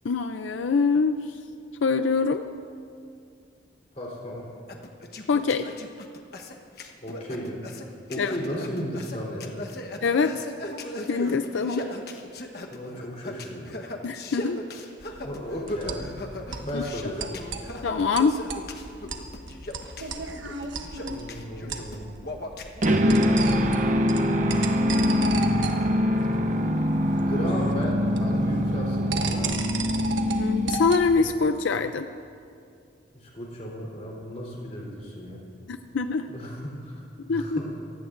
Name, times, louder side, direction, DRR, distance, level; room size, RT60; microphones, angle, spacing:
voice 1, 0.0-1.4 1.8-2.4 5.3-5.7 8.2-8.3 10.0-10.4 11.1-11.9 14.0-14.6 16.7-16.8 17.8-18.4 30.4-32.1 35.7-36.3 37.2-37.6, left 4 dB, 85° left, 9 dB, 0.5 m, -24 dB
voice 2, 3.9-4.5 7.0-7.7 8.1-9.6 12.7-13.7 15.2-16.1 16.6-17.3 21.1-22.2 27.1-29.7 33.1-35.4 36.3-37.7, equal, 35° left, -3 dB, 3.6 m, -35 dB
sound 1, 4.7-23.2, left 1 dB, 55° left, 1.2 m, -38 dB
sound 2, 15.0-31.2, right 4 dB, 90° right, 1.2 m, -36 dB
sound 3, 22.8-31.1, equal, 40° right, 0.9 m, -23 dB
28.0 x 16.5 x 2.6 m, 2.4 s
head